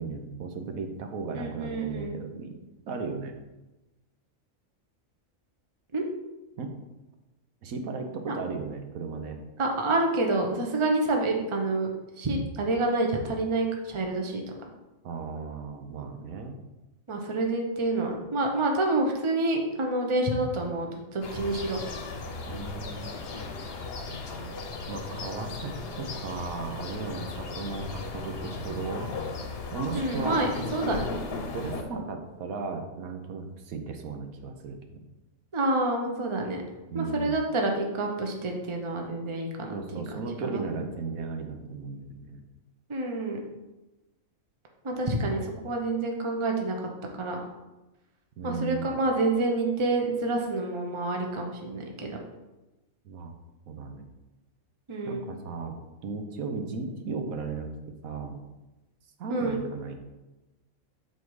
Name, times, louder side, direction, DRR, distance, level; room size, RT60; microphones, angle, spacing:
voice 1, 0.0-2.5 2.9-3.4 6.6-6.7 7.6-9.4 15.0-16.6 22.5-23.1 24.9-29.1 29.7-30.5 31.5-35.0 36.9-37.4 39.7-42.4 48.4-48.9 53.0-53.3 53.7-54.1 55.0-55.8 56.0-57.7 58.0-58.4 59.2-60.0, right 4 dB, 85° right, 5 dB, 1.2 m, -36 dB
voice 2, 1.3-2.2 5.9-6.0 8.3-8.4 9.6-11.9 12.2-14.4 17.1-20.9 21.1-21.8 29.9-31.0 35.5-36.6 36.9-40.0 40.4-40.6 42.9-43.4 44.8-46.8 47.1-47.4 48.4-52.2 54.9-55.2 59.3-59.6, right 2 dB, 25° right, 2 dB, 0.8 m, -28 dB
sound 1, 21.2-31.8, left 3 dB, 50° left, 1.0 m, -36 dB
6.9 x 4.3 x 4.7 m, 1.0 s
omnidirectional pair, 1.4 m